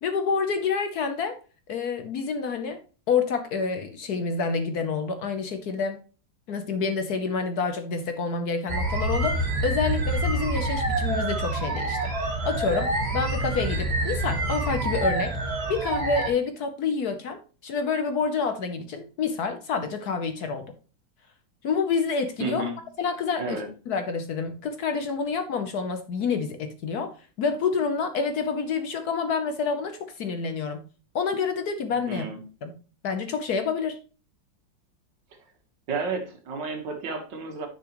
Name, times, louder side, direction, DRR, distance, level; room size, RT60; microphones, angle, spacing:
voice 1, 0.0-1.4 1.7-2.8 3.1-6.0 6.5-15.4 15.7-20.7 21.6-22.7 23.0-23.6 23.9-27.1 27.4-30.9 31.1-32.3 32.6-32.7 33.0-34.0, left 5 dB, 60° left, 8 dB, 1.2 m, -28 dB
sound 1, 8.7-16.3, right 1 dB, 35° right, 1.8 m, -27 dB
voice 2, 22.4-22.8 23.4-23.7 32.1-32.4 35.9-37.7, right 3 dB, 65° right, 4 dB, 2.0 m, -31 dB
10.0 x 6.1 x 3.0 m, 0.35 s
omnidirectional pair, 2.1 m